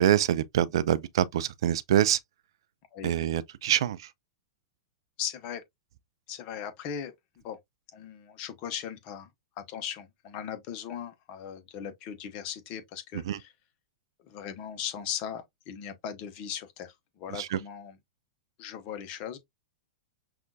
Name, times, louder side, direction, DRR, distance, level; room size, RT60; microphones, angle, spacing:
voice 1, 0.0-2.2 3.0-4.0 13.3-13.4 17.4-17.6, right 11 dB, 65° right, 0.3 m, -25 dB
voice 2, 5.2-5.6 6.3-7.6 7.9-9.3 9.7-13.5 14.2-18.0 18.6-19.4, left 8 dB, 45° left, 0.9 m, -38 dB
5.5 x 2.4 x 2.2 m
hypercardioid pair, 105°, 3 cm